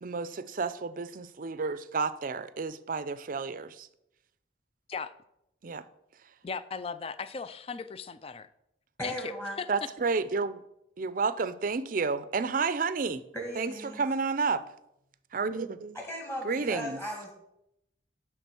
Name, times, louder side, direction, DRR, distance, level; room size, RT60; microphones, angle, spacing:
voice 1, 0.0-3.9 5.6-5.8 9.7-10.6 11.0-13.2 13.6-14.6 15.3-16.0 16.4-17.0, right 4 dB, 50° right, 0.5 m, -31 dB
voice 2, 6.4-8.5 9.0-9.3 9.6-9.9, left 5 dB, 30° left, 0.4 m, -37 dB
voice 3, 9.0-9.5 13.3-14.0 15.9-17.3, equal, 10° left, 2.1 m, -37 dB
10.5 x 3.7 x 6.9 m
head